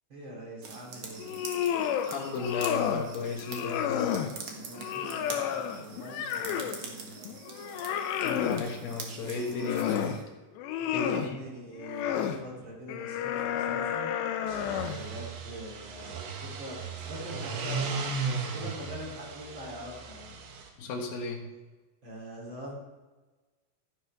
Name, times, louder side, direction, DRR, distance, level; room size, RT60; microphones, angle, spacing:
voice 1, 0.1-1.3 4.5-7.3 10.8-14.1 14.9-20.3 22.0-22.7, equal, 30° right, -4 dB, 3.3 m, -43 dB
sound 1, 0.6-10.2, right 4 dB, 65° right, 1.6 m, -44 dB
sound 2, 1.2-2.1 2.4-3.1 3.4-4.3 4.8-6.8 7.3-8.7 9.3-10.2 10.6-11.3 11.8-12.4 12.9-15.1, left 9 dB, 80° left, 2.9 m, -31 dB
voice 2, 2.0-4.4 8.2-10.2 10.9-11.4 20.8-21.5, left 3 dB, 65° left, 2 dB, 2.8 m, -35 dB
sound 3, 14.4-20.7, right 4 dB, 80° right, 3.6 m, -36 dB
12.5 x 10.5 x 3.5 m, 1.2 s
omnidirectional pair, 5.1 m